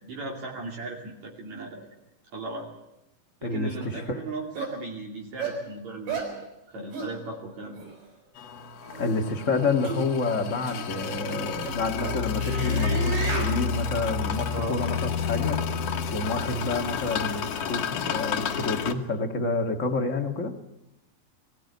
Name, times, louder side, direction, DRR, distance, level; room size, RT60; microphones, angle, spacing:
voice 1, 0.0-1.9 2.3-2.7 3.4-7.8 14.5-14.8, right 2 dB, 55° right, 0 dB, 3.8 m, -37 dB
voice 2, 3.4-4.2 9.0-15.0 15.2-15.6 16.1-20.5, left 3 dB, 35° left, 5 dB, 1.2 m, -29 dB
sound 1, 3.8-3.9 4.6-4.7 5.4-5.6 6.1-6.3 6.9-7.1 7.7-7.9 8.8-9.1 9.8-10.0 10.7-10.8 11.3-13.5, right 4 dB, 75° right, 7.4 m, -33 dB
sound 2, 8.4-18.9, left 6 dB, 60° left, 2.2 m, -30 dB
22.0 x 16.5 x 9.4 m, 0.91 s
omnidirectional pair, 3.8 m